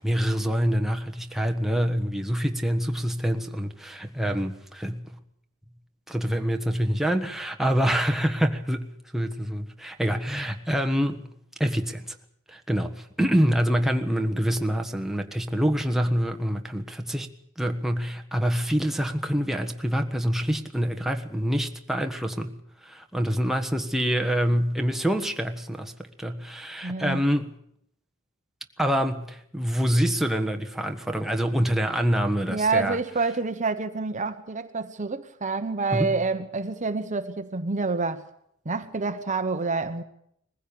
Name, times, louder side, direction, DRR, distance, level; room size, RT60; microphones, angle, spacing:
voice 1, 0.0-5.1 6.1-11.3 11.6-12.2 12.5-17.3 17.6-22.6 22.8-27.5 28.8-33.0 35.9-36.1, equal, ahead, 1.4 m, -26 dB
voice 2, 26.8-27.2 32.5-38.2 38.6-40.0, right 4 dB, 35° right, 1.1 m, -28 dB
21.5 x 15.5 x 8.7 m
head